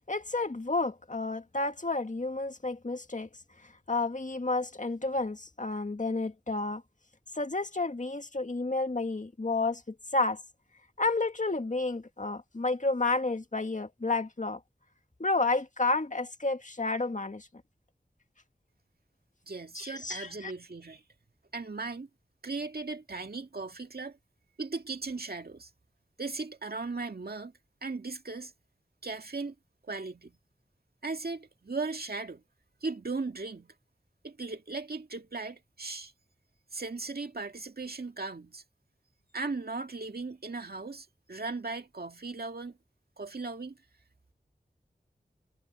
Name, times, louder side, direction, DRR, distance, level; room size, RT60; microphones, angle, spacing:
voice 1, 0.1-3.3 3.6-6.8 7.4-10.4 11.0-14.6 15.2-17.5 19.7-20.5, left 3 dB, 50° left, 2.0 m, -31 dB
voice 2, 19.4-21.0 21.5-22.1 22.4-24.2 24.6-25.7 26.2-27.5 27.8-28.5 29.0-29.5 29.8-30.4 31.0-32.4 32.8-33.7 34.2-36.1 36.7-38.6 39.3-42.8 43.2-43.8, right 3 dB, 65° right, 2.0 m, -37 dB
wide cardioid pair, 40°, 17 cm